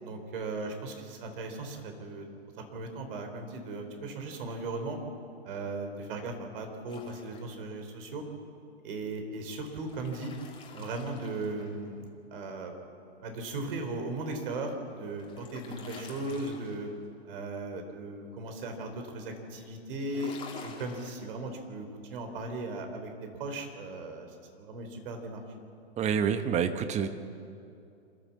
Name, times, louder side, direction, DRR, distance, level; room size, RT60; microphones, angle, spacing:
voice 1, 0.0-2.3 2.7-5.0 5.4-8.2 8.8-10.3 10.7-12.7 13.2-16.9 17.2-25.4, right 2 dB, 55° right, 5 dB, 3.9 m, -37 dB
sound 1, 6.9-7.8 9.6-12.1 14.7-17.1 20.0-21.2, left 4 dB, 15° left, 2.8 m, -48 dB
voice 2, 26.0-27.1, right 7 dB, 20° right, 10 dB, 1.1 m, -27 dB
27.0 x 13.5 x 7.3 m, 2.6 s
hypercardioid pair, 115°, 33 cm